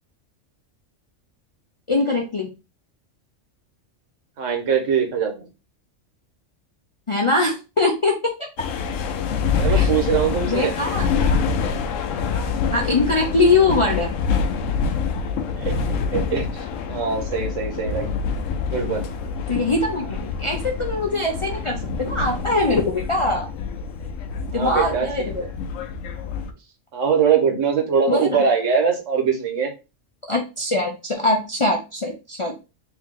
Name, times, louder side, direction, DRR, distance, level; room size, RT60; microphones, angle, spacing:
voice 1, 1.9-2.5 7.1-8.5 9.7-9.9 10.5-11.1 12.7-14.1 19.5-23.5 24.5-25.4 28.1-28.4 30.3-32.6, left 2 dB, 45° left, 0 dB, 0.4 m, -22 dB
voice 2, 4.4-5.5 9.6-10.7 15.6-16.5 16.9-18.0 18.7-19.1 24.5-25.1 26.9-29.7, right 6 dB, 80° right, 4 dB, 1.3 m, -22 dB
sound 1, 8.6-26.5, left 5 dB, 85° left, 1.0 m, -26 dB
3.5 x 2.7 x 3.6 m, 0.29 s
omnidirectional pair, 1.3 m